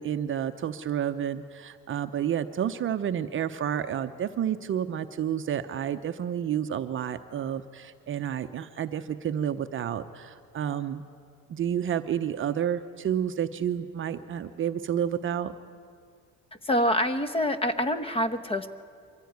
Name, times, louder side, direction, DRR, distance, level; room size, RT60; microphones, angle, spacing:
voice 1, 0.0-11.0 11.5-15.5, right 9 dB, 40° right, 9 dB, 0.7 m, -30 dB
voice 2, 16.6-18.7, equal, 15° left, 12 dB, 0.9 m, -26 dB
24.0 x 15.0 x 9.4 m, 2.3 s
cardioid pair, 145°, 33 cm